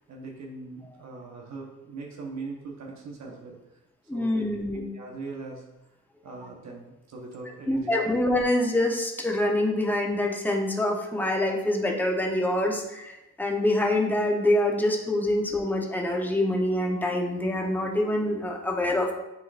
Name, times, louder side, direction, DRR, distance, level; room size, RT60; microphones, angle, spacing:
voice 1, 0.0-3.6 4.1-4.4 4.7-5.6 6.2-8.1, right 3 dB, 65° right, -1 dB, 1.2 m, -40 dB
voice 2, 4.1-4.9 7.7-19.1, left 1 dB, 5° left, 0 dB, 1.1 m, -25 dB
9.5 x 3.8 x 2.6 m, 0.96 s
cardioid pair, 90°, 30 cm